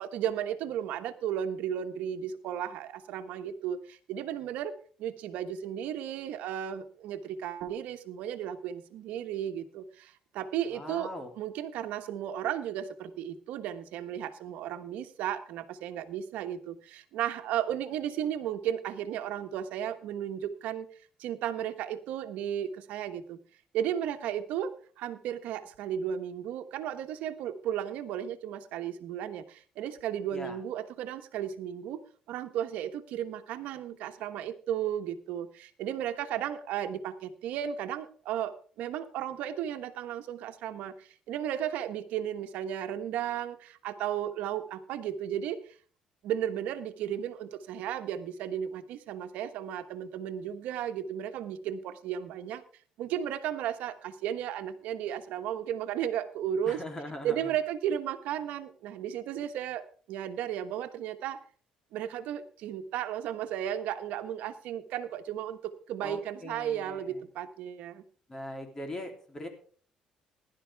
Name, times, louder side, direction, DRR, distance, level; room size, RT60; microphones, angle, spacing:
voice 1, 0.0-4.7 5.0-20.9 21.2-23.4 23.7-32.0 32.3-45.6 46.2-52.6 53.0-56.8 57.2-61.4 61.9-68.0, right 10 dB, 75° right, 9 dB, 1.2 m, -34 dB
voice 2, 10.7-11.3 30.3-30.6 56.6-57.4 66.0-67.1 68.3-69.5, left 1 dB, 20° left, 4 dB, 3.2 m, -40 dB
16.0 x 11.5 x 3.5 m, 0.43 s
cardioid pair, 120°, 3 cm